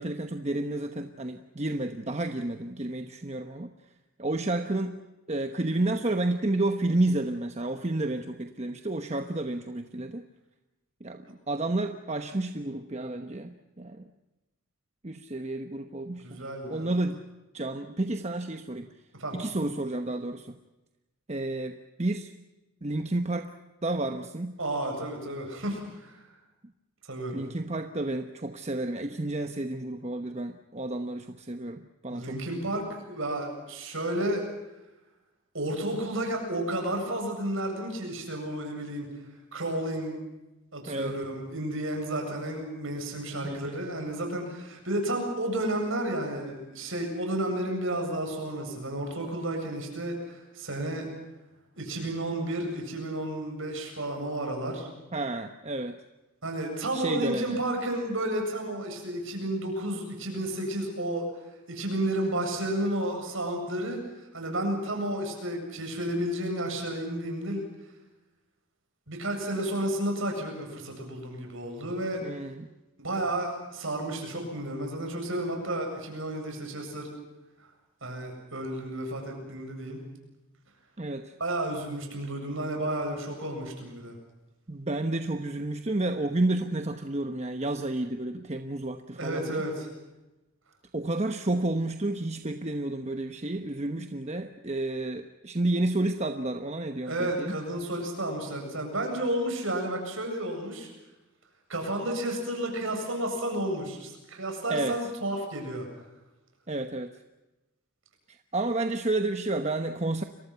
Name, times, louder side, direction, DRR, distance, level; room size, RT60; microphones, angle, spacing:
voice 1, 0.0-3.7 4.2-5.0 5.3-10.3 11.0-14.1 15.0-16.4 16.7-17.2 17.5-18.9 19.3-20.6 21.3-22.3 22.8-23.5 23.8-24.6 27.3-32.4 40.9-41.2 43.4-43.8 55.1-56.0 56.9-57.6 72.2-72.7 81.0-81.3 84.7-89.6 90.9-97.6 104.7-105.1 106.7-107.1 108.3-110.2, right 2 dB, 30° right, 6 dB, 1.1 m, -31 dB
voice 2, 16.2-16.9 19.1-19.4 24.6-26.3 27.1-27.4 32.1-34.5 35.5-39.1 39.5-40.2 40.7-51.1 51.8-54.9 56.4-61.3 61.7-67.7 69.1-72.2 73.0-77.1 78.0-80.0 81.4-84.2 89.2-89.9 97.0-100.9 101.7-105.9, right 1 dB, 65° right, 3 dB, 7.8 m, -32 dB
30.0 x 23.0 x 5.8 m, 1.0 s
head